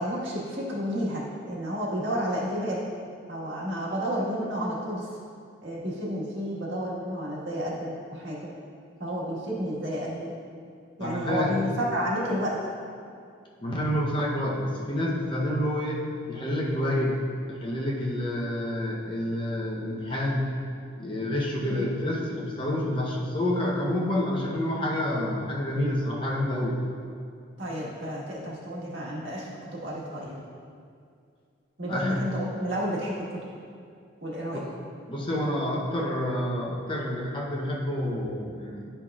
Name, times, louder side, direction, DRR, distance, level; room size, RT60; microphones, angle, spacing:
voice 1, 0.0-2.8 3.3-5.1 5.6-8.5 9.0-10.3 11.0-12.6 21.6-21.8 27.6-30.4 31.8-33.4 34.2-34.6, equal, 70° right, -5 dB, 1.6 m, -31 dB
voice 2, 11.0-11.6 13.6-20.6 21.0-26.8 31.9-32.2 34.5-34.7 35.1-38.9, left 1 dB, 25° left, -3 dB, 0.8 m, -28 dB
10.5 x 5.6 x 2.4 m, 2.3 s
head